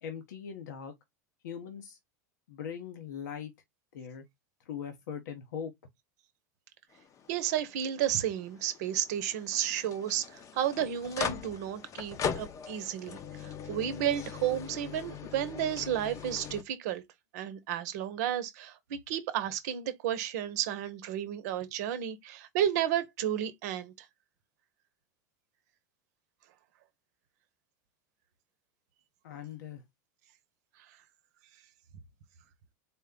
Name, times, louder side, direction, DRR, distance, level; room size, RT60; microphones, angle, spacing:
voice 1, 0.0-0.9 1.4-2.0 2.5-3.5 3.9-4.2 4.6-5.7 29.2-29.8, left 8 dB, 80° left, 0.9 m, -40 dB
sound 1, 6.9-16.6, left 7 dB, 35° left, 0.7 m, -40 dB
voice 2, 7.3-17.0 17.3-24.1, right 10 dB, 65° right, 0.8 m, -32 dB
4.2 x 2.2 x 3.6 m
hypercardioid pair, 100°, 10 cm